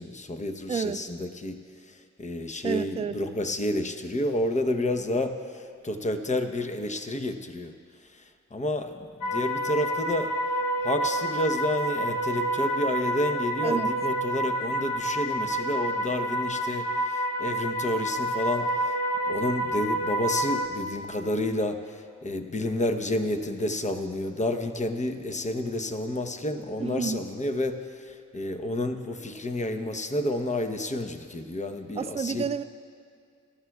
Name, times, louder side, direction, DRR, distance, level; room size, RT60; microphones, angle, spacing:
voice 1, 0.0-1.6 1.9-7.7 8.1-10.3 10.8-19.0 19.3-32.4, left 1 dB, 25° left, 7 dB, 0.9 m, -30 dB
voice 2, 0.7-1.0 2.6-3.2 13.6-13.9 26.8-27.2 32.0-32.6, right 6 dB, 20° right, 11 dB, 0.4 m, -29 dB
sound 1, 9.2-20.7, right 1 dB, 75° left, 1.0 m, -28 dB
18.0 x 13.0 x 2.4 m, 2.2 s
supercardioid pair, 45°, 32 cm